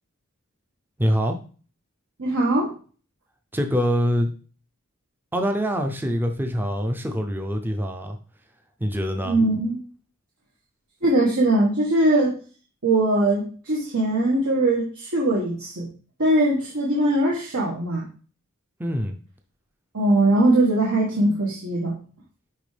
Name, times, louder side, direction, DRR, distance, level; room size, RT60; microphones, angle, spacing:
voice 1, 1.0-1.4 3.5-4.3 5.3-8.2 8.8-9.4 18.8-19.2, equal, 10° right, 4 dB, 0.5 m, -24 dB
voice 2, 2.2-2.7 9.2-9.8 11.0-12.4 12.8-15.9 16.2-18.1 19.9-21.9, right 1 dB, 75° right, -4 dB, 1.5 m, -21 dB
10.5 x 3.6 x 3.3 m, 0.39 s
head